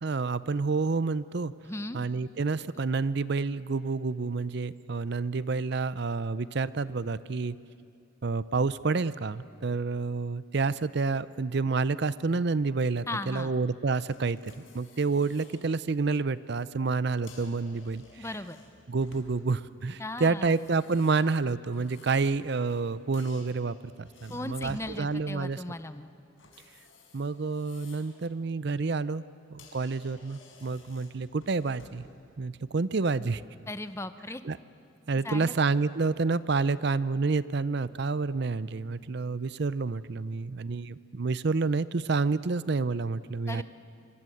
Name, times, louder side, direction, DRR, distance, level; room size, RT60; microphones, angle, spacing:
voice 1, 0.0-1.5 1.9-7.6 8.2-18.3 18.9-25.6 27.1-29.2 29.5-32.0 32.4-33.4 34.4-34.6 35.1-43.6, right 4 dB, 55° right, 17 dB, 0.5 m, -29 dB
voice 2, 1.6-2.0 13.1-13.5 18.2-18.6 20.0-20.6 24.3-26.1 33.7-34.4 35.2-35.5 43.5-43.6, left 2 dB, 15° left, 11 dB, 0.7 m, -37 dB
sound 1, 14.1-15.6 16.1-16.3 17.1-19.6 20.3-22.9 23.1-24.9 26.4-28.2 28.6-28.8 29.3-29.4 29.6-32.1, left 3 dB, 75° left, 5.0 m, -54 dB
26.0 x 25.5 x 7.8 m, 2.6 s
head